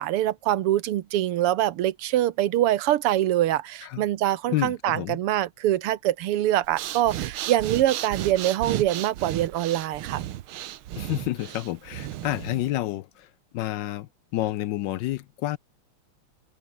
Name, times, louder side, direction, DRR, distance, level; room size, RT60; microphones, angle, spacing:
voice 1, 0.0-10.2, right 13 dB, 90° right, 1.9 m, -24 dB
voice 2, 4.5-5.2 11.0-15.6, left 15 dB, 75° left, 1.0 m, -29 dB
Breathing, 6.6-12.7, right 13 dB, 75° right, 1.7 m, -34 dB
open air
omnidirectional pair, 2.4 m